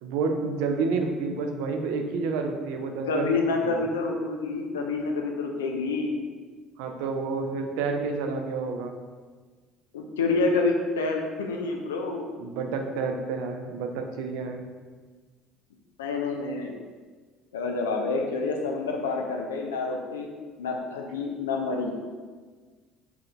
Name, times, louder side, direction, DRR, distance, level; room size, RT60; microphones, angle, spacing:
voice 1, 0.0-3.3 3.6-3.9 6.8-9.0 12.4-14.6, right 4 dB, 65° right, 4 dB, 0.5 m, -29 dB
voice 2, 3.1-6.2 9.9-12.3 16.0-16.7 17.5-20.3 20.6-21.9, left 3 dB, 75° left, 2 dB, 0.4 m, -28 dB
5.7 x 3.8 x 2.3 m, 1.4 s
figure-of-eight pair, 55°, 0 cm